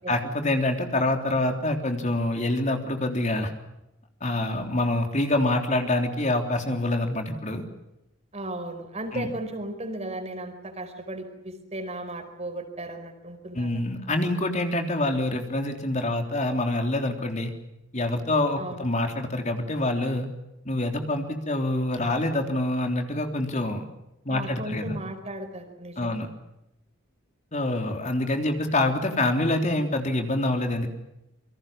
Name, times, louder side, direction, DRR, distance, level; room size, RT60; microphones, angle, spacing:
voice 1, 0.1-3.5 4.2-7.6 9.1-9.3 13.5-17.5 17.9-20.3 20.7-23.8 24.3-25.0 26.0-26.3 27.5-30.9, left 1 dB, 35° left, 5 dB, 3.5 m, -26 dB
voice 2, 8.3-13.8 18.6-18.8 24.3-26.2, right 1 dB, 35° right, 7 dB, 4.8 m, -36 dB
28.5 x 24.5 x 7.2 m, 0.86 s
head